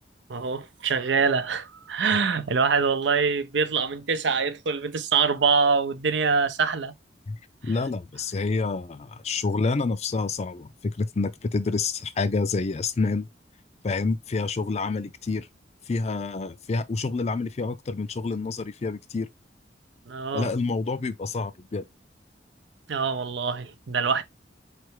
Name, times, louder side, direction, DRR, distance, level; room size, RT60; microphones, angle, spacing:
voice 1, 0.3-6.9 20.1-20.5 22.9-24.2, right 5 dB, 85° right, 0.6 m, -24 dB
voice 2, 7.3-13.3 13.8-15.5 15.9-19.3 20.3-21.8, left 3 dB, 40° left, 0.4 m, -28 dB
4.4 x 3.3 x 3.1 m
head